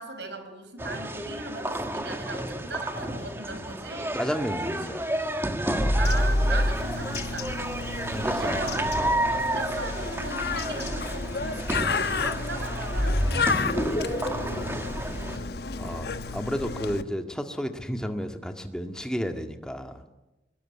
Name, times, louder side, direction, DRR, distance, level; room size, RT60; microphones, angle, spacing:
voice 1, 0.0-4.2 4.6-4.9 5.2-5.4 6.0-7.5 8.3-8.8 9.4-15.5, right 2 dB, 80° right, 8 dB, 5.2 m, -38 dB
sound 1, 0.8-15.4, right 1 dB, 15° right, 1.7 m, -32 dB
voice 2, 4.1-5.1 5.6-6.0 8.1-8.6 9.0-9.1 15.7-20.0, equal, 5° left, 5 dB, 1.8 m, -32 dB
sound 2, 5.8-7.3 12.9-16.0, equal, 35° left, 2.4 m, -27 dB
Bird, 6.0-17.0, left 4 dB, 70° left, 1.2 m, -32 dB
22.5 x 20.5 x 10.0 m, 1.0 s
head